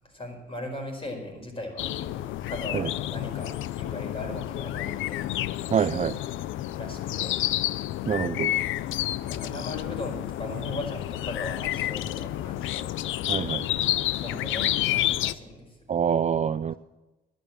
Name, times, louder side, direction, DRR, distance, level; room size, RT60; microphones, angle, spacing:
voice 1, 0.0-5.8 6.8-7.6 9.2-12.9 14.2-15.8, left 1 dB, 30° left, 2 dB, 4.9 m, -39 dB
sound 1, 1.8-15.3, left 14 dB, 80° left, 0.5 m, -30 dB
voice 2, 5.7-6.1 8.1-8.5 13.3-13.6 15.9-16.7, right 8 dB, 35° right, 13 dB, 0.4 m, -25 dB
11.0 x 11.0 x 7.3 m, 1.0 s
cardioid pair, 90°, 20 cm